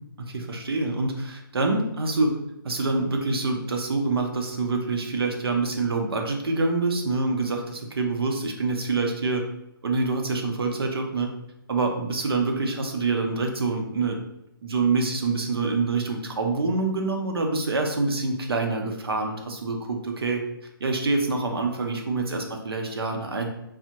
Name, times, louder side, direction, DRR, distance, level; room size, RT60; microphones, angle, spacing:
voice 1, 0.2-2.4 2.6-9.5 9.8-11.3 11.7-14.2 14.6-20.4 20.8-23.5, right 3 dB, 75° right, 3 dB, 0.7 m, -26 dB
3.3 x 2.1 x 2.8 m, 0.84 s
hypercardioid pair, 175°, 13 cm